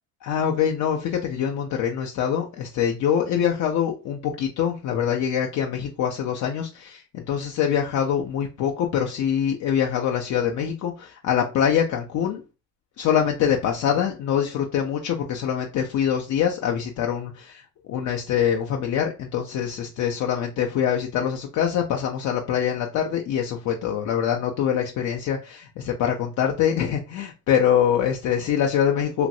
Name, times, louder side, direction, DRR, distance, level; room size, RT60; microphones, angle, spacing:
voice 1, 0.2-12.4 13.0-29.3, left 8 dB, 70° left, 1 dB, 0.5 m, -24 dB
3.0 x 2.5 x 2.6 m, 0.31 s
cardioid pair, 90°, 30 cm